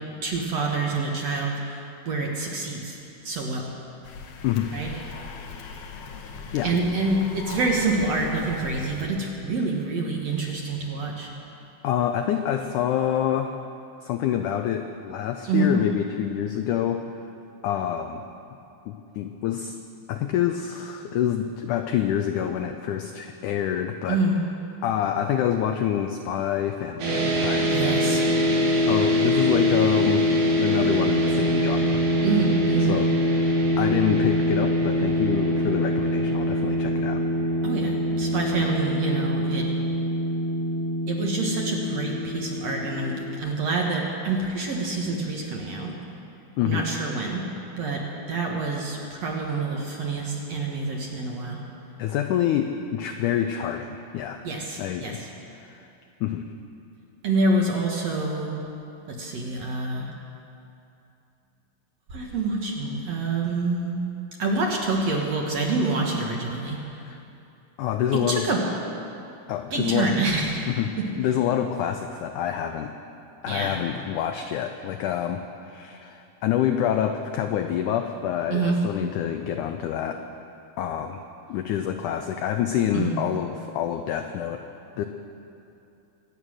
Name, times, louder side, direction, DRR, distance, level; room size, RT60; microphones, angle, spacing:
voice 1, 0.2-3.0 3.2-3.7 4.7-4.9 6.6-11.3 15.5-15.8 24.1-24.4 27.7-28.3 32.2-32.9 37.6-39.7 41.1-46.0 46.7-47.5 47.8-51.6 54.4-55.3 57.2-58.6 59.1-60.1 62.1-64.0 64.4-66.8 68.1-68.7 69.7-70.7 71.0-71.1 73.5-73.8 78.5-78.8 82.9-83.2, right 3 dB, 60° right, -1 dB, 2.0 m, -27 dB
sound 1, 4.0-9.1, left 5 dB, 65° left, 1.8 m, -39 dB
voice 2, 4.4-4.7 6.5-6.8 11.8-13.6 14.0-17.0 17.6-18.2 18.9-19.8 20.1-24.2 24.8-28.5 28.9-30.3 30.6-32.0 32.8-37.2 46.6-46.9 52.0-54.4 54.8-55.2 55.5-55.9 56.2-56.5 67.0-67.2 67.8-68.5 69.5-70.2 70.7-72.9 73.4-80.2 80.8-81.2 81.5-84.6 85.0-85.1, left 10 dB, 90° left, 6 dB, 1.7 m, -27 dB
sound 2, 27.0-43.4, equal, 85° right, 4.3 m, -24 dB
24.0 x 9.2 x 6.3 m, 2.7 s
omnidirectional pair, 4.3 m